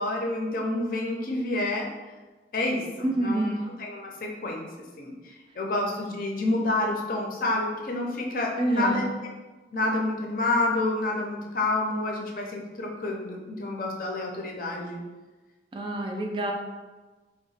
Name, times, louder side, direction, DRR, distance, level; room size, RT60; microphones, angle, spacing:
voice 1, 0.0-1.9 2.5-3.5 3.8-4.7 5.0-5.1 5.6-9.1 9.7-15.0, left 2 dB, 50° left, 0 dB, 0.5 m, -28 dB
voice 2, 3.0-3.6 8.6-9.0 15.7-16.5, right 1 dB, 25° right, 1 dB, 0.3 m, -27 dB
2.8 x 2.1 x 4.1 m, 1.2 s
head